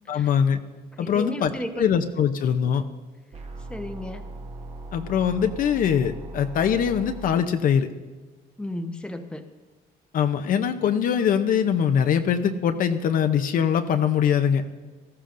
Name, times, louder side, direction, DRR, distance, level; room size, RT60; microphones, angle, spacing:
voice 1, 0.1-0.6 1.0-1.5 1.8-2.8 4.9-7.9 10.1-14.7, left 8 dB, 55° left, 7 dB, 0.7 m, -22 dB
voice 2, 0.9-1.8 3.7-4.2 8.6-9.5, left 1 dB, 5° left, 5 dB, 0.8 m, -34 dB
sound 1, 3.3-7.3, right 2 dB, 40° right, 1.3 m, -39 dB
18.0 x 13.5 x 2.6 m, 1.3 s
cardioid pair, 110°, 17 cm